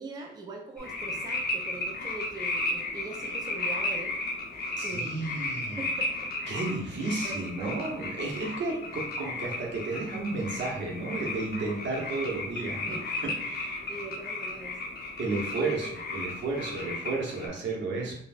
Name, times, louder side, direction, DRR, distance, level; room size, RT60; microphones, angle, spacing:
voice 1, 0.0-4.2 4.8-5.4 5.8-6.3 6.7-6.8 7.2-8.0 8.7-8.9 12.9-13.1 13.9-14.8 15.5-15.8, right 3 dB, 20° right, -1 dB, 0.5 m, -41 dB
sound 1, 0.8-17.5, left 2 dB, 50° left, 0.7 m, -34 dB
voice 2, 4.8-5.8 6.5-13.0 13.4-13.8 15.2-18.2, right 3 dB, 65° right, -2 dB, 0.9 m, -33 dB
3.4 x 2.3 x 2.4 m, 0.68 s
cardioid pair, 90°, 20 cm